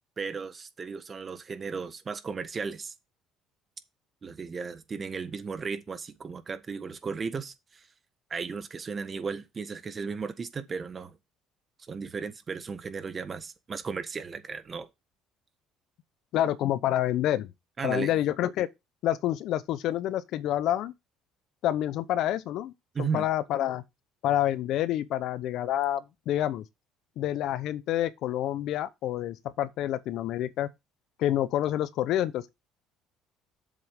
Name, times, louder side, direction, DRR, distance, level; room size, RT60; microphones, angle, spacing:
voice 1, 0.2-2.9 4.2-7.9 8.3-11.2 11.9-14.9 17.8-18.1 22.9-23.3, right 5 dB, 30° right, 1.4 m, -35 dB
voice 2, 16.3-17.5 17.8-18.7 19.0-20.9 21.6-22.7 23.0-23.8 24.2-26.6 27.2-30.7 31.2-32.5, left 12 dB, 65° left, 0.8 m, -28 dB
7.7 x 7.4 x 3.6 m
cardioid pair, 105°, 0 cm